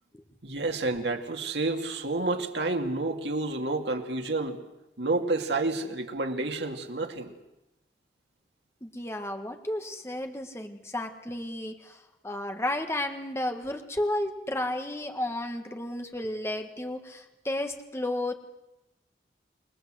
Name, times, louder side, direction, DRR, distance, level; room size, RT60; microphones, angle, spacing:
voice 1, 0.4-4.6 5.0-7.3, right 2 dB, 75° right, 2.7 m, -29 dB
voice 2, 8.8-18.3, left 1 dB, 15° left, 1.7 m, -33 dB
29.0 x 21.0 x 7.8 m
head